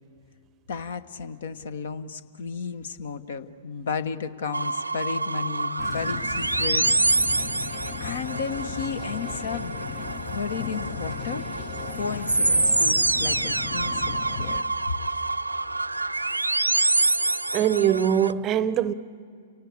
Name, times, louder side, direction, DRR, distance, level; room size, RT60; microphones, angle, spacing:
voice 1, 0.7-7.0 8.0-9.8 10.3-11.5 11.9-14.9, left 5 dB, 60° left, 1.1 m, -33 dB
sound 1, 4.5-18.3, right 2 dB, 85° right, 0.6 m, -26 dB
sound 2, 5.8-14.6, left 8 dB, 30° left, 1.0 m, -37 dB
voice 2, 17.5-18.9, right 9 dB, 30° right, 0.7 m, -22 dB
30.0 x 17.5 x 8.7 m
figure-of-eight pair, 105°, 0 cm